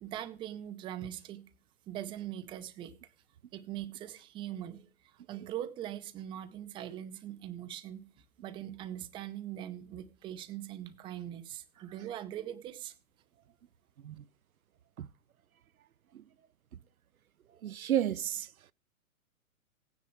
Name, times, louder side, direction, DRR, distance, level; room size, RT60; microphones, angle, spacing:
voice 1, 0.0-1.4 1.9-2.9 3.5-8.1 8.4-12.9, right 11 dB, 10° right, 0.7 m, -41 dB
voice 2, 17.6-18.5, right 11 dB, 75° right, 0.6 m, -31 dB
16.5 x 9.6 x 4.7 m
figure-of-eight pair, 125°, 43 cm